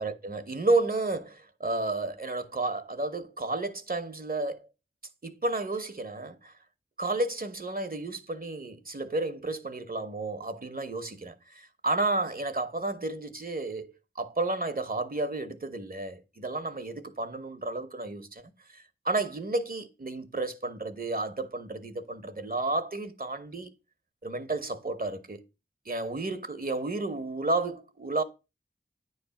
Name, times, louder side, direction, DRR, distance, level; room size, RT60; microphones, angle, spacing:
voice 1, 0.0-4.6 5.2-6.5 7.0-18.4 18.7-23.7 24.2-25.4 25.9-28.2, right 2 dB, 50° right, 1.0 m, -32 dB
9.5 x 3.2 x 5.8 m
wide cardioid pair, 45°, 19 cm